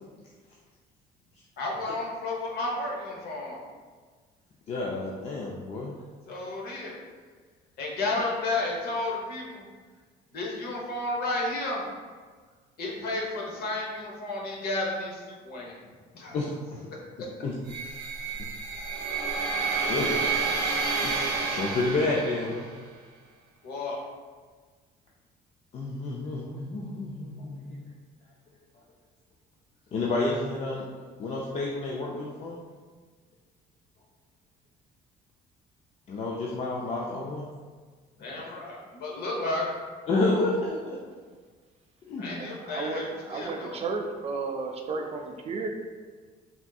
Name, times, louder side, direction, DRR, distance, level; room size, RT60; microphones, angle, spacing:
voice 1, 1.6-3.7 6.2-7.0 7.8-9.6 10.3-11.8 12.8-15.8 16.1-16.4 18.0-18.1 23.6-24.0 38.2-39.8 42.2-43.8, left 2 dB, 65° left, -2 dB, 0.8 m, -32 dB
voice 2, 4.7-6.0 16.3-16.9 17.4-17.5 18.4-18.5 19.9-20.1 21.0-22.7 25.7-27.9 29.9-30.8 31.2-32.6 36.1-37.5 38.2-38.3 40.1-41.0 42.1-42.4, left 2 dB, 40° left, -3 dB, 0.4 m, -30 dB
sound 1, 17.7-22.7, right 4 dB, 85° right, 0.6 m, -29 dB
voice 3, 42.3-45.7, right 4 dB, 40° right, 3 dB, 0.4 m, -33 dB
3.4 x 2.6 x 2.3 m, 1.5 s
cardioid pair, 110°, 17 cm